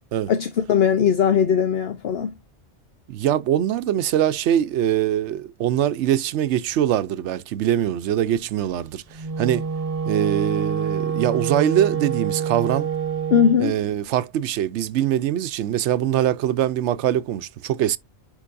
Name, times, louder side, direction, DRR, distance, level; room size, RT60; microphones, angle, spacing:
voice 1, 0.3-2.3 13.3-13.8, left 8 dB, 65° left, 1.0 m, -19 dB
voice 2, 3.1-9.7 10.1-12.9 13.6-18.0, right 11 dB, 90° right, 0.9 m, -23 dB
Wind instrument woodwind instrument, 9.1-13.6, right 7 dB, 35° right, 0.9 m, -26 dB
9.9 x 4.5 x 2.5 m
omnidirectional pair, 1.1 m